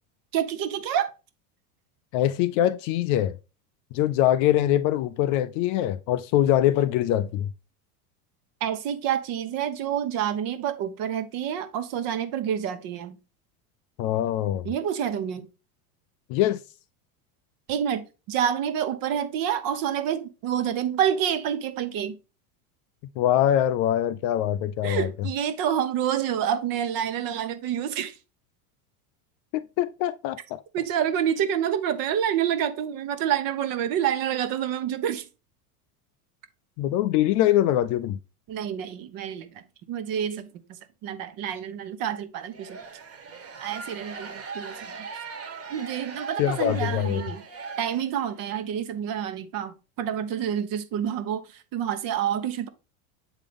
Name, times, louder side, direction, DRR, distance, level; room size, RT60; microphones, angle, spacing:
voice 1, 0.3-1.1 8.6-13.2 14.6-15.5 17.7-22.2 24.8-28.2 30.7-35.3 38.5-40.5 41.0-42.8 43.6-45.1 45.7-47.4 47.8-52.7, right 9 dB, 50° right, 1.1 m, -28 dB
voice 2, 2.1-3.4 3.9-7.5 14.0-14.7 16.3-16.6 23.2-25.1 29.5-30.4 36.8-38.2 46.4-47.2, left 12 dB, 45° left, 0.4 m, -23 dB
sound 1, 42.5-48.4, right 4 dB, 30° right, 1.5 m, -40 dB
8.0 x 3.7 x 3.4 m
supercardioid pair, 115°, 45 cm